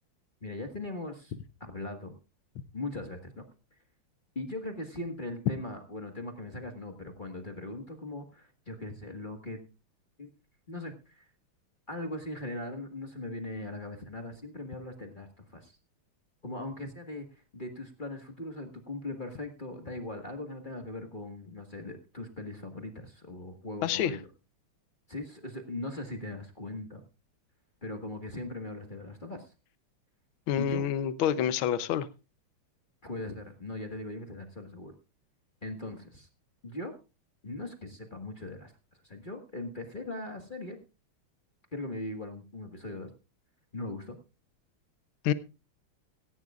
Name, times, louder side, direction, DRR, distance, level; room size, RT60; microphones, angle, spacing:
voice 1, 0.4-1.3 1.6-2.1 2.7-3.4 4.3-9.6 10.2-10.3 10.7-11.3 11.9-15.8 16.4-24.2 25.1-27.0 27.8-29.5 30.6-30.9 33.0-34.9 35.6-36.3 36.6-36.9 37.4-38.7 39.0-40.8 41.7-43.1 43.7-44.2, left 2 dB, 25° left, 1.6 m, -39 dB
voice 2, 23.8-24.1 30.5-32.1 45.2-45.3, left 10 dB, 75° left, 1.6 m, -27 dB
17.0 x 15.5 x 2.4 m
omnidirectional pair, 2.4 m